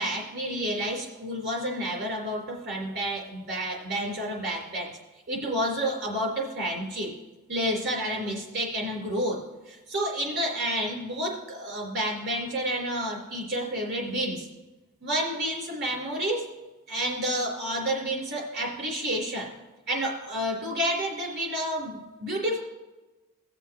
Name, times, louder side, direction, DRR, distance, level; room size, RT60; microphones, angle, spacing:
voice 1, 0.0-4.9 5.3-7.1 7.5-9.4 9.7-14.5 15.0-16.4 16.9-19.5 19.9-22.6, equal, 50° right, -2 dB, 3.7 m, -30 dB
18.5 x 6.9 x 3.0 m, 1.1 s
head